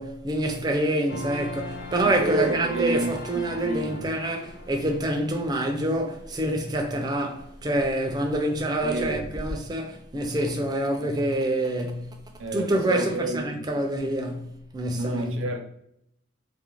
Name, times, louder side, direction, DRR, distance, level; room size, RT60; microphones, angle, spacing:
voice 1, 0.0-12.1 12.5-15.5, right 1 dB, 20° right, 0.3 m, -26 dB
sound 1, 1.1-9.6, left 1 dB, 55° left, 0.4 m, -41 dB
voice 2, 2.2-3.1 3.5-4.1 8.8-9.2 12.4-13.7 14.9-15.6, right 2 dB, 80° right, 0.5 m, -30 dB
2.4 x 2.0 x 2.9 m
head